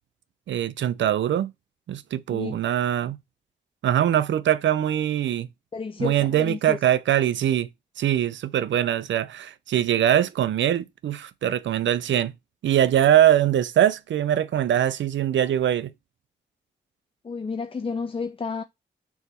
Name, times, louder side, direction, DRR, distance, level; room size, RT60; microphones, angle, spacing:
voice 1, 0.5-1.5 1.9-3.2 3.8-5.5 6.0-7.7 8.0-12.3 12.6-15.9, right 11 dB, 80° right, 0.5 m, -22 dB
voice 2, 5.7-6.8 17.2-18.6, left 5 dB, 30° left, 0.5 m, -31 dB
4.8 x 4.0 x 5.5 m
cardioid pair, 50°, 19 cm